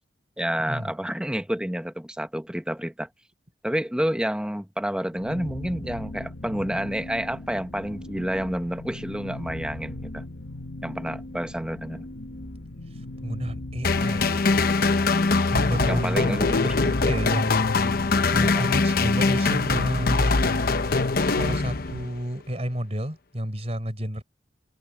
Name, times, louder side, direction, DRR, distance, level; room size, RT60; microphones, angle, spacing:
voice 1, 0.4-3.1 3.6-10.2 10.8-12.1 15.9-16.7 18.4-18.7, equal, 5° right, 1.0 m, -29 dB
sound 1, 5.1-22.1, left 1 dB, 75° left, 1.9 m, -38 dB
voice 2, 13.2-14.5 15.5-17.6 18.3-20.4 21.3-24.2, equal, 35° right, 4.3 m, -30 dB
sound 2, 13.8-22.2, left 3 dB, 55° left, 0.9 m, -22 dB
head